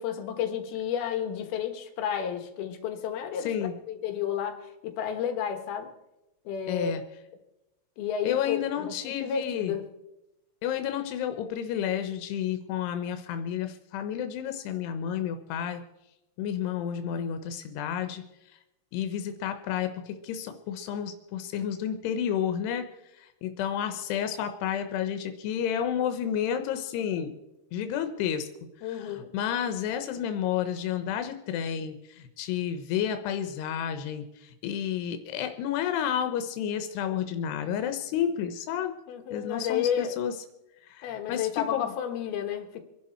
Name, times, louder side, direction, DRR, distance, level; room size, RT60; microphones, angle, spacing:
voice 1, 0.0-3.5 3.9-5.9 6.4-6.9 8.0-9.9 28.8-29.3 39.1-40.2 41.0-42.8, left 8 dB, 70° left, 6 dB, 3.2 m, -31 dB
voice 2, 3.4-3.7 6.7-7.0 8.2-9.7 10.6-15.8 16.4-18.2 18.9-22.8 23.2-27.3 27.7-28.5 28.9-39.0 39.3-40.3 40.9-41.9, left 9 dB, 90° left, 8 dB, 3.0 m, -31 dB
26.0 x 11.5 x 4.4 m, 0.96 s
omnidirectional pair, 4.6 m